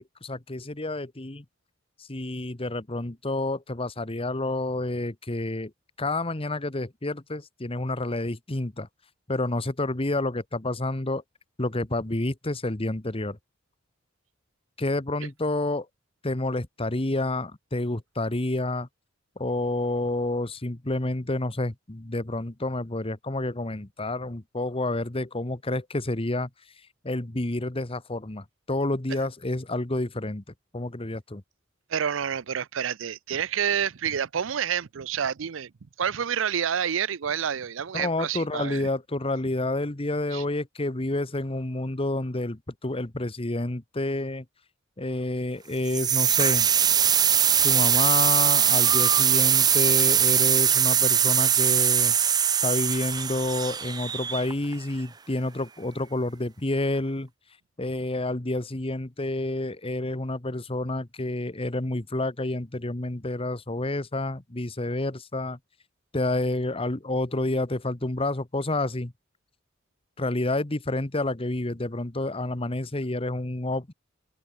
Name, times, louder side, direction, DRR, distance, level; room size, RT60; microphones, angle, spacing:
voice 1, 0.0-1.4 2.0-5.7 6.0-8.9 9.3-11.2 11.6-13.4 14.8-15.9 16.2-18.9 19.4-26.5 27.0-30.4 30.7-31.4 37.9-44.4 45.0-46.7 47.6-52.2 52.6-57.3 57.8-65.6 66.1-69.1 70.2-73.9, left 2 dB, 30° left, 1.3 m, -29 dB
voice 2, 31.9-35.7 36.0-38.9 40.3-40.4, right 8 dB, 80° right, 0.6 m, -28 dB
sound 1, 45.9-54.7, right 8 dB, 20° right, 0.4 m, -21 dB
open air
head